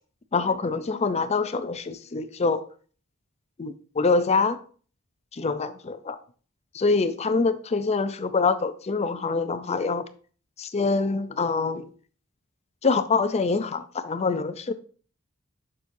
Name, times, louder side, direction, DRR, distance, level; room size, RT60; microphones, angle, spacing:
voice 1, 0.3-2.6 3.6-4.6 5.3-6.2 6.7-10.1 10.6-11.9 12.8-14.7, left 4 dB, 30° left, 0.5 m, -25 dB
7.2 x 6.1 x 2.7 m
head